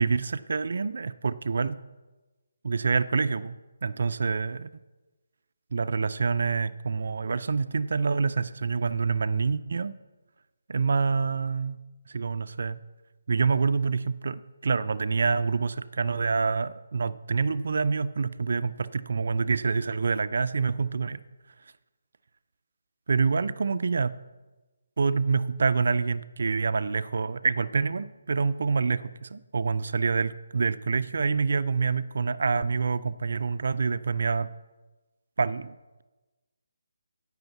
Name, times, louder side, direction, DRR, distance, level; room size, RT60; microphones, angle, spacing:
voice 1, 0.0-1.8 2.6-3.6 3.8-4.7 5.7-10.0 10.7-11.8 12.1-12.8 13.3-21.2 23.1-24.2 25.0-34.5 35.4-35.8, right 4 dB, 65° right, 13 dB, 0.4 m, -26 dB
8.9 x 6.2 x 8.1 m, 1.2 s
figure-of-eight pair, 160°, 0 cm